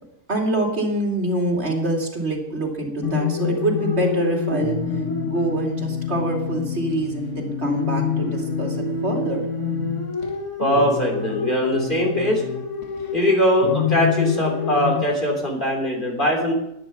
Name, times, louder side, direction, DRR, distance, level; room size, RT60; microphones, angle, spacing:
voice 1, 0.3-4.8 5.2-9.4, right 2 dB, 45° right, 0 dB, 3.1 m, -25 dB
sound 1, 3.0-15.0, left 6 dB, 50° left, 1.8 m, -26 dB
voice 2, 10.6-12.4 13.1-16.5, equal, 35° left, 0 dB, 3.4 m, -21 dB
12.0 x 10.5 x 6.0 m, 0.82 s
omnidirectional pair, 1.6 m